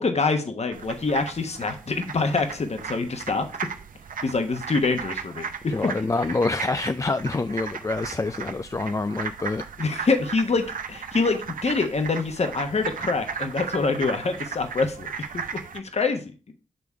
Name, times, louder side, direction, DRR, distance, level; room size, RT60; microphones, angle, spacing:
voice 1, 0.0-3.7 4.2-5.9 9.8-15.1 15.3-15.4 15.7-16.2, left 4 dB, 50° left, 1.2 m, -25 dB
sound 1, 0.7-15.8, right 6 dB, 75° right, 0.6 m, -36 dB
voice 2, 5.7-9.6, left 3 dB, 20° left, 0.4 m, -26 dB
7.8 x 3.5 x 4.6 m
cardioid pair, 45°, 14 cm